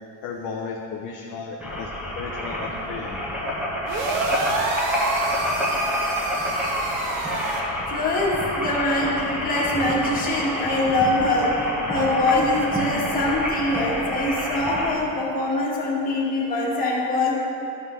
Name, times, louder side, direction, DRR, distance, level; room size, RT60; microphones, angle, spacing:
voice 1, 0.2-1.9 2.2-3.2, left 5 dB, 40° left, 0 dB, 0.6 m, -34 dB
sound 1, 1.6-15.0, left 1 dB, 5° right, 0.6 m, -28 dB
sound 2, 3.9-7.6, right 3 dB, 75° right, 1.1 m, -27 dB
voice 2, 7.9-11.5 11.9-17.3, left 2 dB, 20° left, -6 dB, 1.5 m, -23 dB
13.0 x 5.5 x 3.1 m, 2.8 s
cardioid pair, 170°, 46 cm